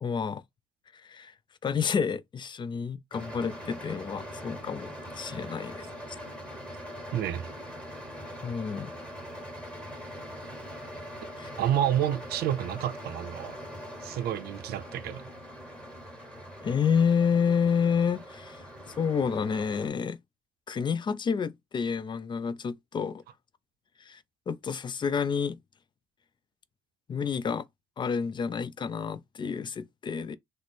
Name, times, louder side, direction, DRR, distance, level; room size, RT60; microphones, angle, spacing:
voice 1, 0.0-0.4 1.0-1.3 1.6-6.2 8.4-8.9 11.4-11.5 16.6-18.6 19.0-20.2 20.7-23.2 24.0-25.6 27.1-27.6 28.0-30.4, left 6 dB, 30° left, 0.4 m, -29 dB
sound 1, 3.1-19.9, equal, 5° left, 1.5 m, -42 dB
voice 2, 7.1-7.5 11.6-13.6 14.0-15.3, right 11 dB, 65° right, 0.6 m, -29 dB
3.1 x 2.0 x 4.1 m
cardioid pair, 110°, 17 cm